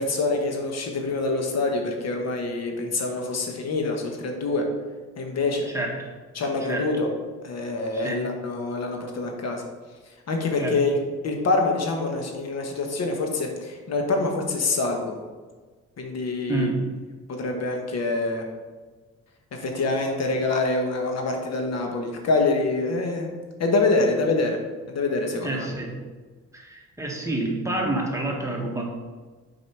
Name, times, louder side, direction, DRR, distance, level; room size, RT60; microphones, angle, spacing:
voice 1, 0.0-4.7 5.2-5.7 6.3-7.1 7.4-9.6 10.3-11.0 11.2-15.2 16.0-16.7 17.3-18.4 19.6-23.3 23.6-24.6 24.9-25.7, left 3 dB, 60° left, 2 dB, 1.3 m, -25 dB
voice 2, 5.6-6.1 6.6-6.8 7.9-8.2 10.6-10.8 16.5-16.9 25.4-26.0 26.5-28.8, right 2 dB, 10° right, -2 dB, 1.6 m, -28 dB
6.1 x 5.0 x 4.7 m, 1.4 s
cardioid pair, 90°, 30 cm